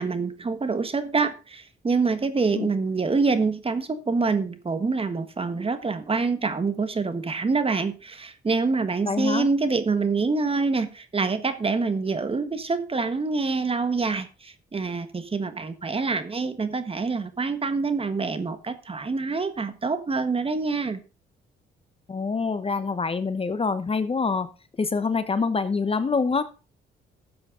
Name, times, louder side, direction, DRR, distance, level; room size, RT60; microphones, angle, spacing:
voice 1, 0.0-21.0, right 4 dB, 30° right, 1.5 m, -26 dB
voice 2, 9.0-9.5 22.1-24.5 24.8-26.4, left 4 dB, 30° left, 1.0 m, -25 dB
13.0 x 7.7 x 3.8 m
cardioid pair, 90°, 20 cm